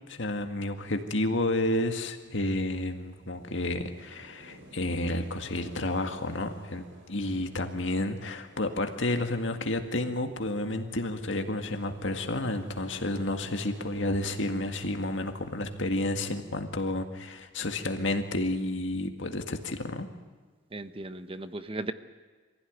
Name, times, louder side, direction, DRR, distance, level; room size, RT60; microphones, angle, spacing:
voice 1, 0.1-20.1, left 1 dB, 75° left, 6 dB, 2.0 m, -31 dB
sound 1, 2.2-16.6, right 1 dB, 90° right, 4.4 m, -53 dB
voice 2, 20.7-21.9, right 2 dB, 30° right, 11 dB, 0.9 m, -36 dB
24.0 x 16.0 x 9.6 m, 1.4 s
head